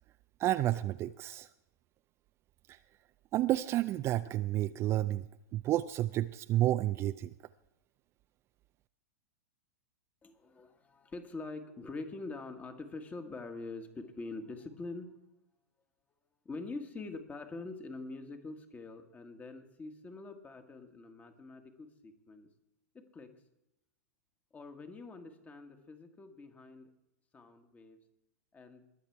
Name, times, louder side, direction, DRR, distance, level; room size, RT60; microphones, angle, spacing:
voice 1, 0.4-1.5 2.7-2.8 3.3-5.3 5.5-7.3, right 14 dB, 30° right, 12 dB, 0.4 m, -30 dB
voice 2, 10.2-15.2 16.4-22.5 22.9-23.3 24.5-26.9 27.3-28.0 28.5-28.8, left 3 dB, 20° left, 7 dB, 1.5 m, -45 dB
21.5 x 7.3 x 4.7 m, 0.89 s
hypercardioid pair, 110°, 9 cm